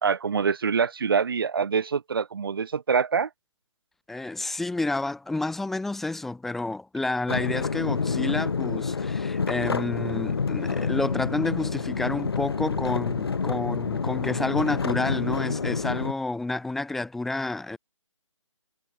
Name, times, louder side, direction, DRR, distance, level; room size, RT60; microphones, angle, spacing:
voice 1, 0.0-3.3, right 6 dB, 45° right, 3.9 m, -25 dB
voice 2, 4.1-17.8, left 2 dB, ahead, 0.9 m, -30 dB
sound 1, 7.3-16.1, left 5 dB, 50° left, 4.0 m, -28 dB
figure-of-eight pair, 150°, 17 cm